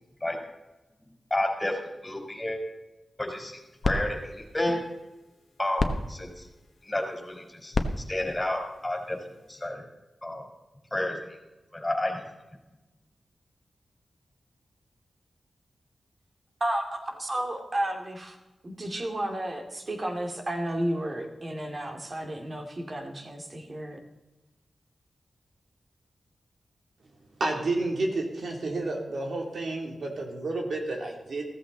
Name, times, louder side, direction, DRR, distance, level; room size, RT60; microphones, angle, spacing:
voice 1, 1.3-2.6 3.2-3.6 3.8-4.8 5.6-6.5 6.8-9.2 9.5-9.8 10.2-10.4 10.9-11.4 11.7-12.2, left 1 dB, 15° left, 2 dB, 4.3 m, -31 dB
sound 1, 3.3-9.7, left 2 dB, 50° left, 1.1 m, -34 dB
voice 2, 16.6-18.4 18.6-24.0, right 1 dB, 40° right, 3 dB, 2.5 m, -32 dB
voice 3, 27.4-31.4, right 2 dB, 70° right, 1 dB, 3.0 m, -30 dB
15.5 x 14.5 x 4.0 m, 1.0 s
wide cardioid pair, 90°, 0 cm